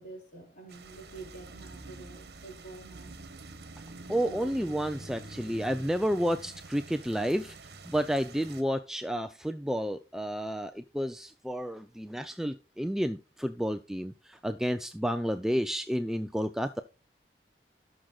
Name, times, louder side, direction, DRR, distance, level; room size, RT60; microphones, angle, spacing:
voice 1, 0.0-3.2 4.1-4.5, right 3 dB, 45° left, 4.3 m, -47 dB
sound 1, 0.7-8.6, right 3 dB, 70° right, 1.4 m, -47 dB
voice 2, 4.1-7.6 7.9-16.8, equal, 5° right, 0.4 m, -31 dB
18.0 x 6.3 x 2.3 m
head